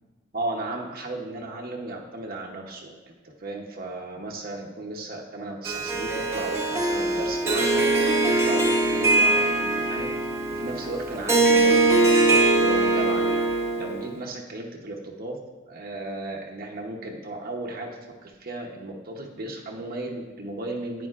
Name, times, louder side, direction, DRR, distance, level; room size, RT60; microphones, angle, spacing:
voice 1, 0.3-3.1 3.4-10.1 10.5-15.4 15.7-21.1, right 2 dB, 50° right, 0 dB, 0.9 m, -35 dB
Harp, 5.6-14.1, right 2 dB, 15° right, 1.0 m, -22 dB
11.0 x 8.7 x 2.4 m, 1.3 s
head